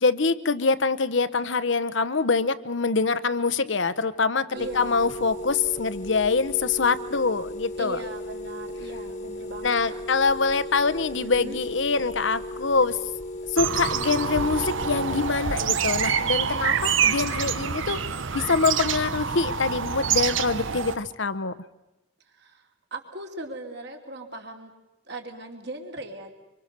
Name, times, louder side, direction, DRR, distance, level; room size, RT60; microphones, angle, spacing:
voice 1, 0.0-4.5 4.7-8.0 9.6-13.0 13.5-18.0 18.3-21.5, left 4 dB, 65° left, 15 dB, 0.9 m, -24 dB
voice 2, 4.5-5.2 7.7-10.0 11.2-11.6 22.3-24.7 25.0-26.3, right 2 dB, 55° right, 3 dB, 3.0 m, -39 dB
sound 1, 4.6-15.3, left 1 dB, 40° left, 1.5 m, -36 dB
sound 2, 13.6-20.9, right 7 dB, 75° right, 1.0 m, -26 dB
25.5 x 24.5 x 6.7 m, 0.97 s
head